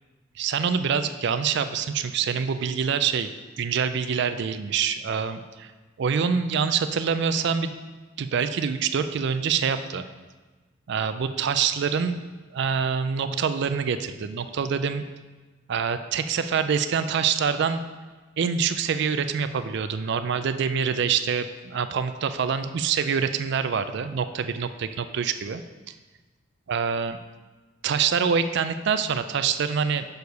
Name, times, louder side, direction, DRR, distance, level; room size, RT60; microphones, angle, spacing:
voice 1, 0.4-3.3 3.6-5.7 6.0-7.7 8.2-10.0 10.9-12.3 12.5-15.0 15.7-17.8 18.4-25.6 26.7-27.2 27.8-30.1, right 6 dB, 60° right, 11 dB, 0.4 m, -25 dB
6.5 x 4.7 x 5.3 m, 1.3 s
head